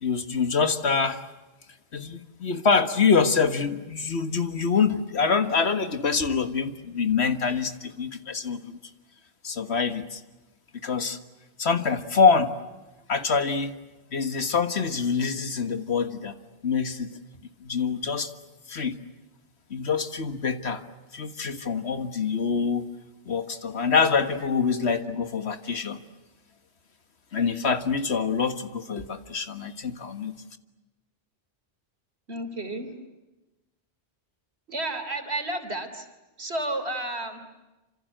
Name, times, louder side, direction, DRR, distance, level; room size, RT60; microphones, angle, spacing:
voice 1, 0.0-1.2 1.9-8.8 9.4-10.2 10.7-11.2 11.6-12.5 13.1-13.8 14.1-16.3 16.6-17.1 17.6-18.3 18.7-19.0 19.7-20.8 21.1-22.9 23.3-26.0 27.3-30.3, left 5 dB, 80° left, 9 dB, 1.9 m, -25 dB
voice 2, 32.3-32.9 34.7-36.1 36.4-37.4, right 1 dB, 75° right, 7 dB, 3.6 m, -31 dB
28.0 x 27.0 x 7.8 m, 1.1 s
omnidirectional pair, 1.1 m